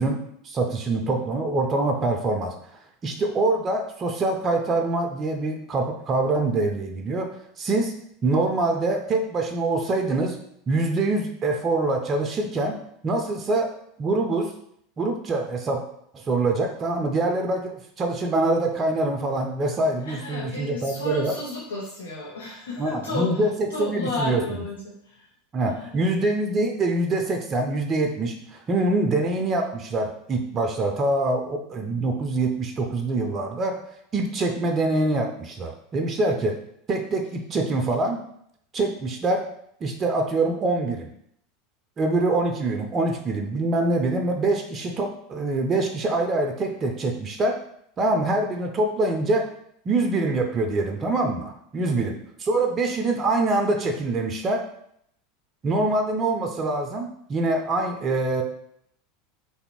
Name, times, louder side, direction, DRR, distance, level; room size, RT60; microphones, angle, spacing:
voice 1, 0.0-7.3 7.6-7.9 8.2-10.4 10.7-12.8 13.0-13.7 14.0-14.5 15.0-15.8 16.1-21.4 22.8-23.5 23.8-24.4 25.5-33.8 34.1-36.6 36.9-38.2 38.7-39.4 39.8-41.1 42.0-47.6 48.0-49.5 49.9-54.6 55.6-58.4, right 2 dB, 30° right, 4 dB, 0.4 m, -24 dB
voice 2, 20.0-25.3 25.6-26.2 51.8-52.0, left 2 dB, 80° left, -3 dB, 0.5 m, -33 dB
3.1 x 2.5 x 2.9 m, 0.71 s
figure-of-eight pair, 80°, 0 cm